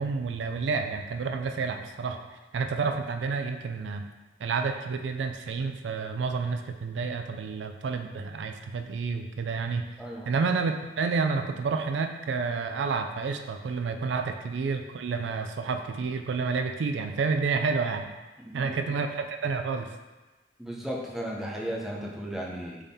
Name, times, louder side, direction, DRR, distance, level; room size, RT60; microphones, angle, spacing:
voice 1, 0.0-2.2 2.5-4.1 4.4-9.9 10.3-18.1 18.5-19.9, right 4 dB, 90° right, 6 dB, 0.4 m, -29 dB
voice 2, 10.0-10.3 18.4-18.9 20.6-22.8, equal, ahead, -3 dB, 0.6 m, -35 dB
4.1 x 3.5 x 3.5 m, 1.2 s
head